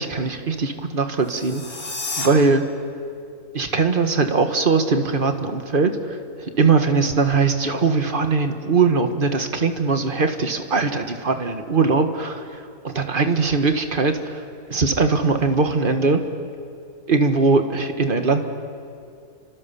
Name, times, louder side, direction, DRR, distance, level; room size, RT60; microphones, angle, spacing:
voice 1, 0.0-1.6 2.2-2.6 3.5-14.4 14.7-16.2 17.1-18.4, right 4 dB, 35° right, 7 dB, 1.6 m, -20 dB
sound 1, 1.2-2.3, left 3 dB, 35° left, 3.0 m, -31 dB
29.0 x 26.0 x 7.1 m, 2.4 s
omnidirectional pair, 1.6 m